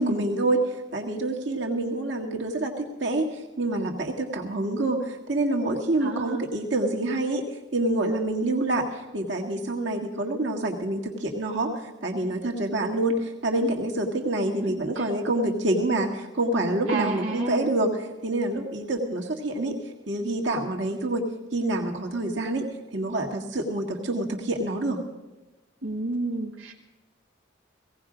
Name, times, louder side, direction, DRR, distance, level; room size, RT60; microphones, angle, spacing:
voice 1, 0.0-3.3 3.6-7.4 7.7-8.9 9.1-19.8 20.1-21.3 21.5-22.7 22.9-25.0, right 2 dB, 60° right, 1 dB, 1.8 m, -27 dB
voice 2, 6.0-6.4 15.0-15.1 16.9-17.7 25.8-26.7, right 2 dB, 80° right, -1 dB, 1.4 m, -30 dB
17.5 x 16.5 x 5.0 m, 1.1 s
head